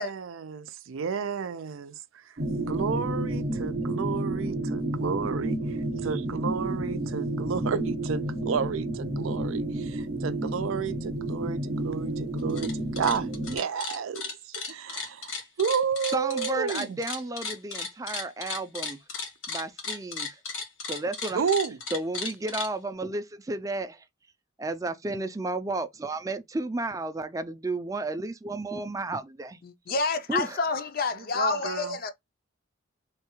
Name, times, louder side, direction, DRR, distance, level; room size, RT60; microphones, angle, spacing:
voice 1, 0.0-17.0 21.3-21.8 31.1-32.0, right 6 dB, 90° right, 0.4 m, -32 dB
sound 1, 2.4-13.6, right 1 dB, 50° right, 0.7 m, -31 dB
sound 2, 12.4-12.7 13.0-22.7, left 4 dB, 85° left, 1.4 m, -35 dB
voice 2, 16.1-19.0 19.5-20.4 20.9-21.4 21.9-24.0 24.6-29.6 30.3-30.6, right 2 dB, 15° right, 0.4 m, -32 dB
voice 3, 29.6-32.1, left 4 dB, 50° left, 0.5 m, -28 dB
3.2 x 2.3 x 3.0 m
head